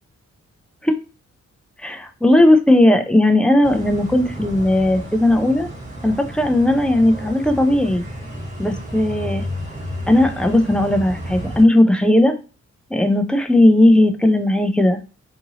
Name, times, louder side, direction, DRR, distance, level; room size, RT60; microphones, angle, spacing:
voice 1, 1.8-5.7 6.0-8.0 8.6-9.4 10.1-12.4 12.9-15.0, left 1 dB, 5° left, 7 dB, 0.4 m, -16 dB
sound 1, 3.6-11.6, equal, 25° right, 1.2 m, -32 dB
2.7 x 2.6 x 2.7 m, 0.34 s
cardioid pair, 75°, 29 cm